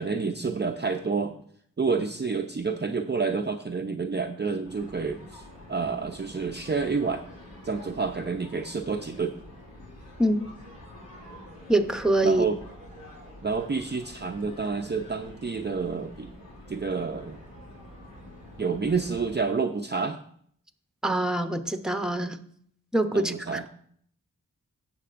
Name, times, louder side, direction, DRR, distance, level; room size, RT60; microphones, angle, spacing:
voice 1, 0.0-1.4 1.8-5.4 5.7-7.3 7.6-9.4 12.2-12.6 13.4-16.3 16.7-17.4 18.6-20.2 23.1-23.7, right 4 dB, 30° right, 0.6 m, -29 dB
sound 1, 4.6-19.4, left 1 dB, 80° left, 2.9 m, -47 dB
voice 2, 11.7-12.4 21.0-22.4 22.9-23.7, right 1 dB, ahead, 0.9 m, -24 dB
16.5 x 6.7 x 2.6 m
wide cardioid pair, 55°, 34 cm